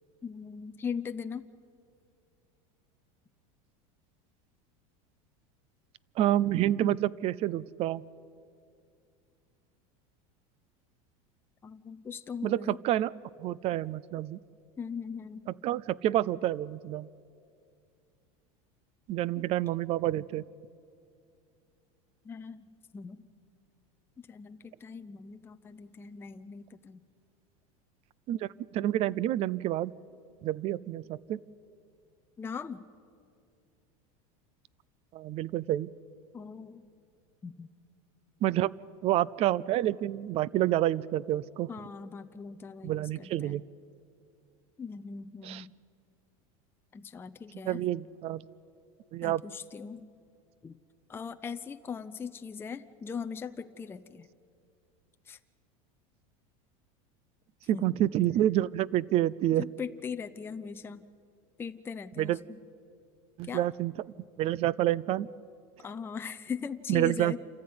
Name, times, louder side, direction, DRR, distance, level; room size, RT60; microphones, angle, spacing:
voice 1, 0.2-1.5 11.6-12.8 14.8-15.5 19.4-19.5 22.2-23.3 24.2-27.0 32.4-32.9 36.3-36.9 37.4-37.7 41.7-43.6 44.8-45.7 46.9-47.8 49.2-50.1 50.6-50.8 51.1-54.3 55.3-55.4 57.7-58.0 59.5-61.1 61.6-62.6 63.4-63.7 65.8-67.4, left 6 dB, 15° left, 9 dB, 0.6 m, -40 dB
voice 2, 6.2-8.0 12.4-13.1 13.4-14.4 15.6-17.1 19.1-20.4 28.3-29.9 30.4-31.4 35.1-35.9 38.4-38.8 39.0-41.7 42.8-43.6 45.4-45.6 47.6-48.4 49.1-49.4 57.7-59.6 62.2-62.4 63.4-63.9 64.4-65.3 66.9-67.4, right 13 dB, 35° right, 23 dB, 0.5 m, -28 dB
28.0 x 14.5 x 9.5 m, 2.4 s
supercardioid pair, 145°, 18 cm